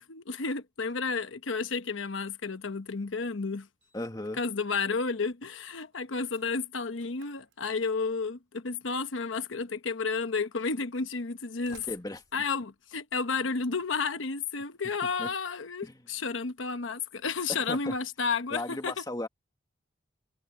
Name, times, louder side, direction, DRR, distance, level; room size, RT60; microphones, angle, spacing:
voice 1, 0.1-3.7 4.4-11.9 12.3-18.9, left 4 dB, 85° left, 1.0 m, -32 dB
Slam, 3.0-3.1 3.8-4.3 4.5-4.9 5.2-8.1 9.2-9.3 10.2-10.3 11.3-13.6, right 6 dB, 75° right, 5.4 m, -60 dB
voice 2, 3.9-4.4 11.7-12.2 15.2-15.3 15.8-16.0 17.5-18.0 18.5-19.3, left 1 dB, 20° left, 1.9 m, -36 dB
head